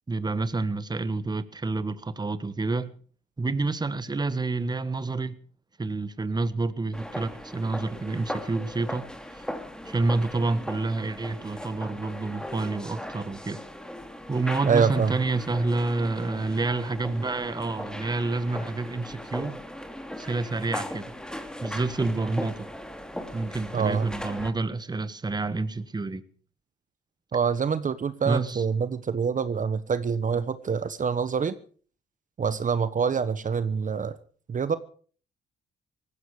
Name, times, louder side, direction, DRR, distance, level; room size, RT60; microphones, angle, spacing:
voice 1, 0.1-2.9 3.4-5.3 5.8-9.0 9.3-9.4 9.8-13.6 14.3-19.6 20.2-21.1 21.6-22.7 23.3-26.2 28.2-28.6, right 3 dB, 20° right, 1.4 m, -28 dB
sound 1, 6.9-24.5, equal, 5° left, 2.9 m, -38 dB
voice 2, 14.7-15.1 23.7-24.1 27.3-31.5 32.4-34.2 34.5-34.8, right 6 dB, 40° right, 1.2 m, -26 dB
18.5 x 15.5 x 4.9 m
cardioid pair, 90°, 20 cm